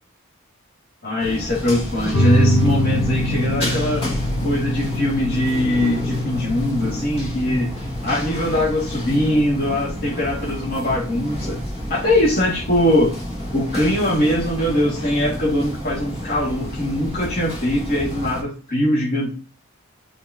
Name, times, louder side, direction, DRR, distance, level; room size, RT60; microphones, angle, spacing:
voice 1, 1.0-4.1 4.4-7.7 8.0-11.6 11.9-13.2 13.5-19.3, left 1 dB, 45° left, -6 dB, 2.6 m, -21 dB
sound 1, 1.2-18.4, equal, 30° left, 3.1 m, -30 dB
sound 2, 2.1-13.1, left 1 dB, 80° left, 1.4 m, -25 dB
7.3 x 4.4 x 2.9 m, 0.38 s
head